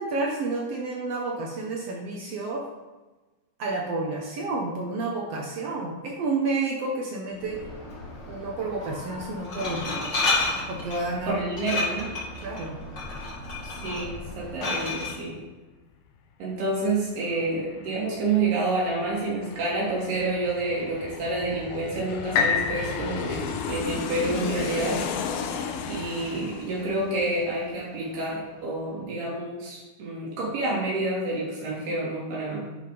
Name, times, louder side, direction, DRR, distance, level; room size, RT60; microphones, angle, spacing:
voice 1, 0.0-2.7 3.6-7.6 8.3-9.9 10.7-11.4 12.4-12.8, right 3 dB, 75° right, -1 dB, 1.4 m, -30 dB
Glass, 7.3-15.1, left 3 dB, 35° left, 2.4 m, -32 dB
voice 2, 11.3-12.1 13.8-15.4 16.4-25.0 25.4-25.5 25.9-32.6, right 2 dB, 90° right, -6 dB, 5.2 m, -28 dB
Aircraft, 16.5-16.6 16.9-28.2 28.5-28.6, left 6 dB, 85° left, 2.6 m, -35 dB
sound 1, 22.3-26.3 26.9-27.0, left 6 dB, 70° left, 2.3 m, -30 dB
10.0 x 5.3 x 5.1 m, 1.2 s
omnidirectional pair, 4.4 m